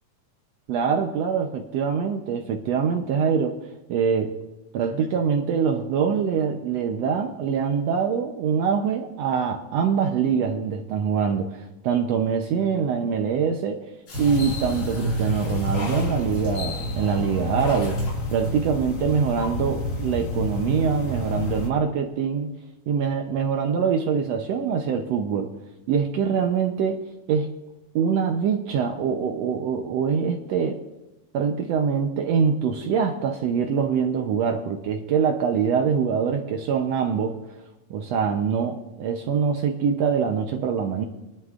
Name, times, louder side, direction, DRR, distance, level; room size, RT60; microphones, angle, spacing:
voice 1, 0.7-3.6 3.9-4.3 4.7-13.8 14.2-18.0 18.3-22.5 22.9-25.5 25.9-27.0 27.3-27.5 27.9-30.8 31.3-37.4 37.9-41.1, right 6 dB, 80° right, 4 dB, 1.5 m, -24 dB
sound 1, 14.1-21.7, left 1 dB, 90° left, 0.7 m, -28 dB
sound 2, 14.1-17.0 17.5-18.9 19.4-19.5, left 2 dB, 60° left, 5.6 m, -44 dB
23.0 x 11.5 x 2.4 m, 1.0 s
omnidirectional pair, 3.8 m